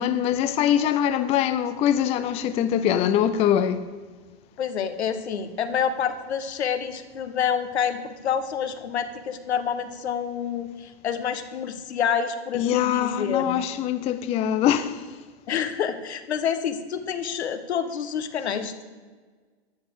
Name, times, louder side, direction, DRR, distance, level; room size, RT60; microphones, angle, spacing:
voice 1, 0.0-3.9 12.5-15.1, left 10 dB, 20° left, 0.5 m, -23 dB
voice 2, 4.6-13.6 15.5-18.7, left 7 dB, 80° left, 1.4 m, -28 dB
13.0 x 7.1 x 7.9 m
hypercardioid pair, 130°, 32 cm